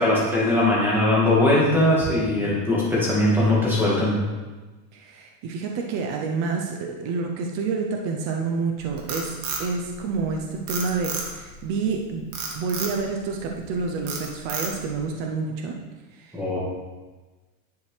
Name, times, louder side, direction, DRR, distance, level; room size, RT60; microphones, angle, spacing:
voice 1, 0.0-4.1 16.3-16.6, left 1 dB, 5° right, -7 dB, 1.9 m, -20 dB
voice 2, 4.9-12.3 12.5-15.8 16.1-16.4, right 4 dB, 40° right, 2 dB, 0.6 m, -28 dB
Frog, 8.8-10.3 10.7-11.6 12.3-13.0 13.5-13.7 14.1-15.0, right 4 dB, 60° right, 1.6 m, -31 dB
10.5 x 4.6 x 3.3 m, 1.2 s
supercardioid pair, 160°, 44 cm